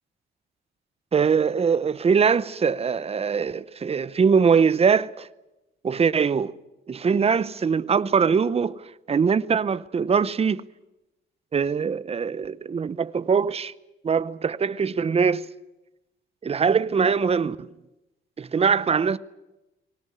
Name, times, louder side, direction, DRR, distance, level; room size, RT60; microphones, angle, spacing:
voice 1, 1.1-5.3 5.8-6.5 6.9-10.6 11.5-13.7 14.0-15.5 16.4-17.7 18.4-19.2, right 6 dB, 30° right, 0.7 m, -22 dB
20.0 x 18.5 x 9.6 m
cardioid pair, 90°, 20 cm